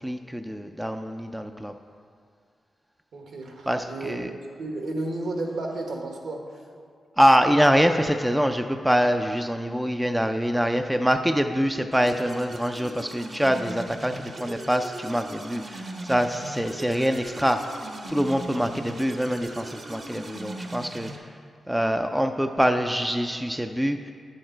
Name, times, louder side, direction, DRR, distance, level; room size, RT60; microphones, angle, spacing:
voice 1, 0.0-1.7 3.7-4.3 7.2-17.6 18.1-21.3 21.7-24.0, equal, 5° right, 6 dB, 0.3 m, -24 dB
voice 2, 3.1-4.1 4.6-6.4, right 2 dB, 70° right, 1 dB, 1.4 m, -32 dB
sound 1, 11.9-21.2, right 2 dB, 40° right, 0.8 m, -39 dB
10.5 x 6.5 x 4.4 m, 2.2 s
wide cardioid pair, 110°, 0 cm